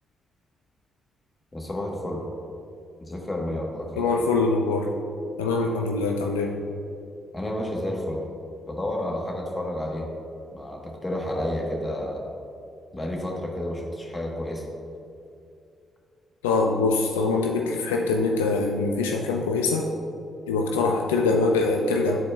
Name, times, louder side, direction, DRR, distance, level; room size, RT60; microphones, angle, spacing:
voice 1, 1.5-2.2 3.0-4.1 7.3-8.2 8.7-10.1 10.5-12.2 12.9-14.6, left 1 dB, 30° left, -1 dB, 1.4 m, -30 dB
voice 2, 4.0-4.9 5.4-6.6 16.4-19.9 20.5-22.2, left 3 dB, 85° left, 1 dB, 0.3 m, -23 dB
10.5 x 4.2 x 2.5 m, 2.5 s
hypercardioid pair, 40°, 0 cm